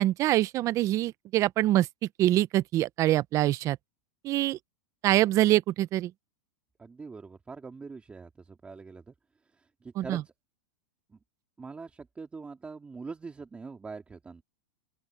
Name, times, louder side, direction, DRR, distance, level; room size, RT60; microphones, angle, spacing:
voice 1, 0.0-1.9 2.2-3.8 4.2-4.6 5.0-6.1 10.0-10.2, right 15 dB, 30° right, 0.6 m, -24 dB
voice 2, 6.8-9.1 9.4-10.3 11.1-11.2 11.6-14.4, right 4 dB, 10° right, 2.6 m, -43 dB
open air
supercardioid pair, 145°, 10 cm